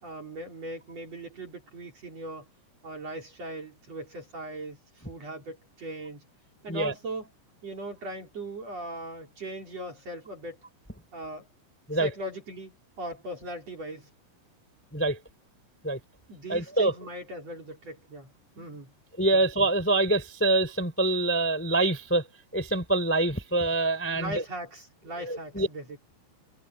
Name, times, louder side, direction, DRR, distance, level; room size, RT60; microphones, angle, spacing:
voice 1, 0.0-2.5 2.8-6.2 6.6-7.3 7.6-10.6 11.1-11.5 11.9-14.1 16.3-18.3 18.6-18.9 19.3-19.4 24.1-26.0, right 1 dB, 35° right, 4.1 m, -39 dB
voice 2, 16.5-16.9 19.2-22.2 22.5-24.4 25.3-25.7, right 2 dB, 5° left, 2.8 m, -25 dB
omnidirectional pair, 5.7 m